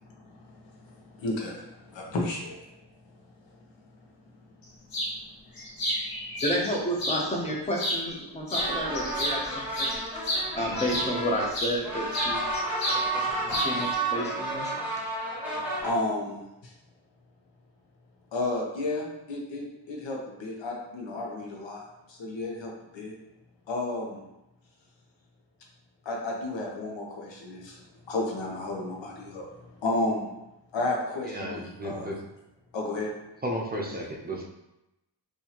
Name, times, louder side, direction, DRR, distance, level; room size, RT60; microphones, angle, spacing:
voice 1, 0.0-2.6 15.8-16.7 18.3-23.1 23.7-24.2 26.0-29.5 29.8-30.3 30.7-32.2 32.7-33.1, left 2 dB, 90° left, -1 dB, 0.9 m, -32 dB
sound 1, 4.9-5.1 5.6-7.2 7.7-8.2 8.5-11.8 12.1-13.0 13.3-13.9, equal, 55° left, 0.9 m, -31 dB
voice 2, 6.4-10.0 10.5-12.4 12.9-14.8, equal, 15° left, -1 dB, 0.7 m, -31 dB
sound 2, 8.6-15.9, right 2 dB, 5° right, 1.1 m, -31 dB
voice 3, 31.3-32.1 33.4-34.4, equal, 20° right, -2 dB, 0.5 m, -33 dB
4.1 x 2.7 x 2.9 m, 0.92 s
wide cardioid pair, 130°, 43 cm